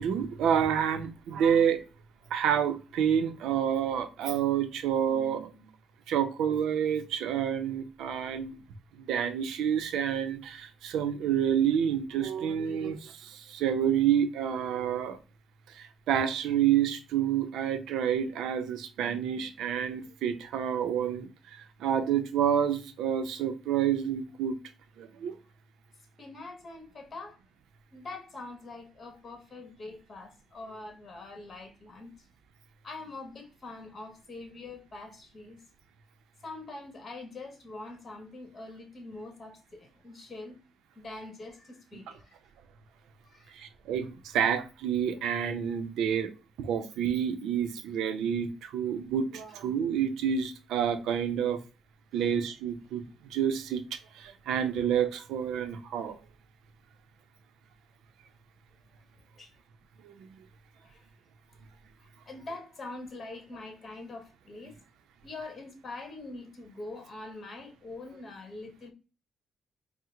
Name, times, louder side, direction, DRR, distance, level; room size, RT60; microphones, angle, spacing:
voice 1, 0.0-1.8 2.3-5.7 6.1-8.6 9.0-15.2 15.7-24.5 25.0-25.4 43.5-46.3 46.6-51.6 52.1-56.2 60.0-60.3, right 8 dB, 85° right, 0.6 m, -29 dB
voice 2, 26.2-27.4 27.9-32.3 32.8-35.6 36.4-40.6 40.9-42.5 43.2-43.6 52.2-52.3 59.4-59.5 60.8-61.1 62.0-64.8 65.2-68.9, left 2 dB, 40° left, 1.3 m, -44 dB
4.3 x 2.1 x 3.7 m
cardioid pair, 90°, 0 cm